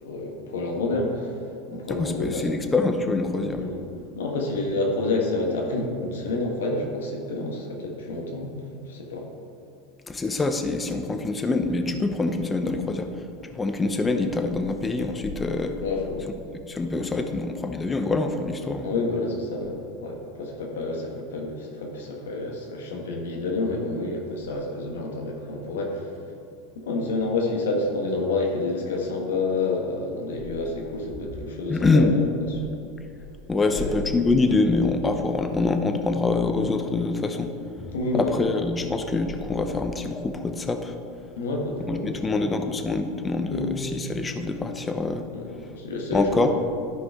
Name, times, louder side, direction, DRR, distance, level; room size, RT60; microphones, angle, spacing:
voice 1, 0.0-2.5 3.6-3.8 4.1-8.5 8.9-9.3 15.8-16.3 18.8-26.2 26.7-32.2 32.5-32.7 33.5-33.9 37.9-38.5 41.4-42.4 43.5-43.8 45.3-46.5, left 2 dB, 80° left, 1 dB, 1.5 m, -29 dB
voice 2, 1.9-3.6 10.1-13.2 13.5-15.8 16.7-18.9 31.7-32.1 33.5-41.0 41.9-45.2 46.1-46.5, left 3 dB, 20° left, 6 dB, 0.8 m, -25 dB
12.5 x 5.0 x 3.7 m, 2.5 s
hypercardioid pair, 90°, 0 cm